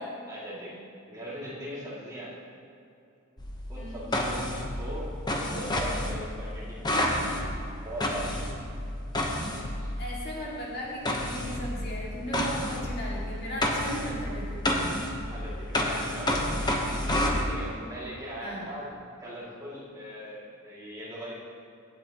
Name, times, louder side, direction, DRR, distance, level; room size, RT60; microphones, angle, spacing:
voice 1, 0.0-2.4 3.7-5.2 5.5-7.5 7.8-8.5 9.8-9.9 10.3-10.6 15.3-16.8 17.4-21.3, equal, 15° right, -8 dB, 2.4 m, -40 dB
sound 1, 3.4-10.2 11.1-17.4, left 1 dB, 20° left, 0.9 m, -30 dB
voice 2, 3.8-4.1 10.0-15.0 18.4-18.7, equal, 45° left, -5 dB, 2.2 m, -37 dB
17.0 x 8.0 x 3.0 m, 2.6 s
head